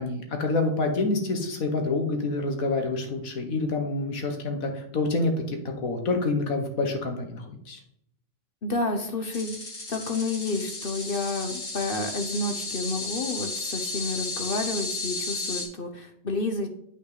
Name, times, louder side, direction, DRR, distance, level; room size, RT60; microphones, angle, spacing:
voice 1, 0.0-7.8, left 3 dB, 85° left, 4 dB, 1.9 m, -27 dB
voice 2, 8.6-9.5 9.9-16.7, left 3 dB, 45° left, 6 dB, 1.0 m, -30 dB
sound 1, 9.3-15.7, left 3 dB, 70° left, 2.6 m, -33 dB
8.1 x 5.9 x 4.0 m, 0.73 s
omnidirectional pair, 1.4 m